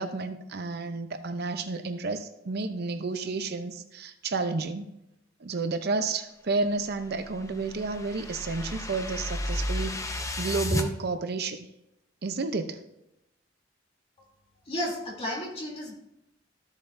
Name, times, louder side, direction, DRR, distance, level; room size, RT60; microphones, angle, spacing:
voice 1, 0.0-4.9 5.4-11.7 12.2-12.8, right 3 dB, 55° right, 9 dB, 0.6 m, -31 dB
sound 1, 6.8-10.9, left 1 dB, 15° left, 0.7 m, -32 dB
voice 2, 14.6-15.9, left 1 dB, 30° left, -3 dB, 3.0 m, -33 dB
13.5 x 7.3 x 2.6 m, 0.87 s
head